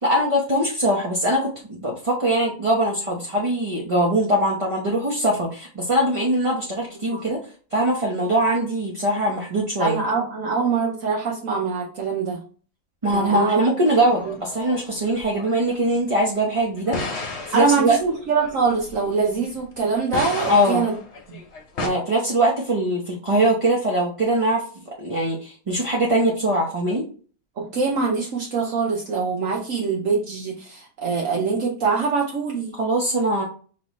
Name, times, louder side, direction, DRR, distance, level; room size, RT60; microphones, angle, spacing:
voice 1, 0.0-7.4 7.7-10.0 13.0-17.1 17.5-18.0 20.5-20.8 21.8-24.6 25.0-27.1 32.7-33.4, right 1 dB, 30° right, -3 dB, 0.7 m, -22 dB
voice 2, 9.8-12.4 13.1-13.8 14.2-14.3 17.5-21.0 27.6-32.7, right 5 dB, 60° right, -1 dB, 1.1 m, -24 dB
sound 1, 13.9-15.8 16.8-19.7 20.1-21.9, left 3 dB, 50° left, 1.1 m, -34 dB
5.5 x 3.0 x 3.1 m, 0.40 s
omnidirectional pair, 1.7 m